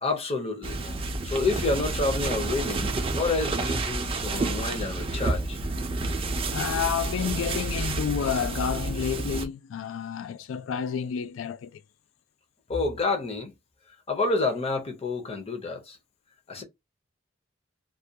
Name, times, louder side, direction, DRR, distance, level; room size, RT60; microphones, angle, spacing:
voice 1, 0.0-5.6 12.7-13.5 14.1-16.0 16.5-16.6, left 3 dB, 30° left, 0.6 m, -29 dB
sound 1, 0.6-9.5, right 2 dB, 30° right, 0.4 m, -30 dB
voice 2, 6.5-11.8, left 8 dB, 80° left, 0.3 m, -30 dB
2.3 x 2.2 x 2.7 m
head